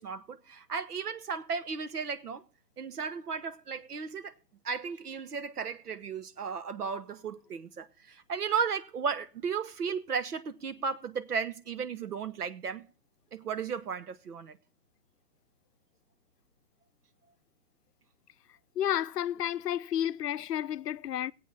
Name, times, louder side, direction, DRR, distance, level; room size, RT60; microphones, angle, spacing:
voice 1, 0.0-2.4 2.8-4.3 4.6-12.8 13.3-14.6, right 6 dB, 75° right, 1.3 m, -35 dB
voice 2, 18.8-21.3, left 11 dB, 85° left, 0.6 m, -31 dB
17.5 x 8.4 x 4.2 m
hypercardioid pair, 160°, 47 cm